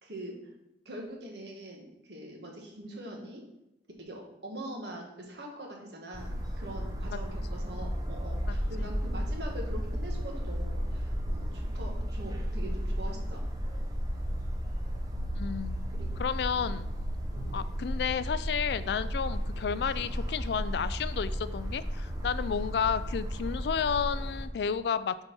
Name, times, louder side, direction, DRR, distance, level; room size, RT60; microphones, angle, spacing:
voice 1, 0.0-0.4 0.8-3.4 4.0-13.4 15.9-16.1 16.5-16.7 17.3-17.6, right 1 dB, 65° right, 0 dB, 1.6 m, -43 dB
sound 1, 6.1-24.5, equal, 20° right, 0.8 m, -34 dB
voice 2, 8.5-8.9 15.3-15.8 16.2-16.9 17.5-25.2, left 7 dB, 65° left, 14 dB, 0.3 m, -32 dB
6.9 x 4.2 x 5.4 m, 0.87 s
head